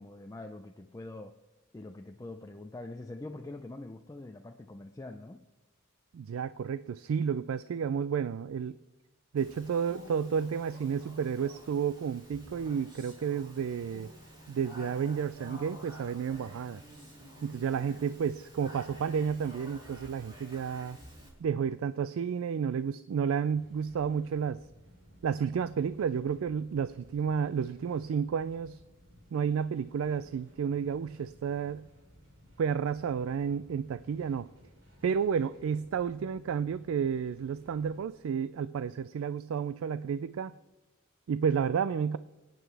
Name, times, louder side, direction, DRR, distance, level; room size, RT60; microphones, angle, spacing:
voice 1, 0.0-1.4 1.7-5.4, left 2 dB, 15° left, 5 dB, 0.4 m, -44 dB
voice 2, 6.1-8.8 9.3-14.1 14.5-16.8 17.4-21.0 21.4-24.6 25.2-28.8 29.3-31.8 32.6-34.5 35.0-40.5 41.3-42.2, right 7 dB, 80° right, 15 dB, 0.3 m, -31 dB
Speech, 9.4-21.3, equal, 25° right, 3.8 m, -50 dB
sound 1, 23.4-38.0, equal, 65° right, 4.6 m, -58 dB
24.0 x 9.1 x 3.4 m, 1.1 s
head